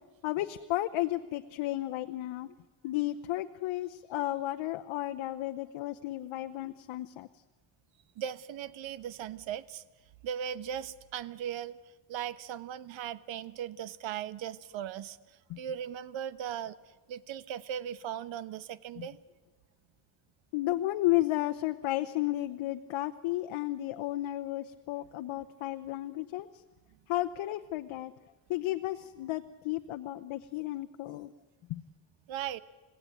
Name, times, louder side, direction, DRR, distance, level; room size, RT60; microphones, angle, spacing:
voice 1, 0.2-2.5 2.8-7.3 15.5-15.6 19.0-19.1 20.5-26.5 27.1-28.1 28.5-31.3 31.7-31.8, left 16 dB, 90° left, 7 dB, 0.9 m, -33 dB
voice 2, 8.2-9.8 10.2-11.8 12.1-15.2 15.6-16.8 17.1-19.2 32.3-32.6, right 9 dB, 75° right, 15 dB, 1.1 m, -38 dB
29.0 x 16.5 x 9.2 m, 1.2 s
cardioid pair, 125°, 46 cm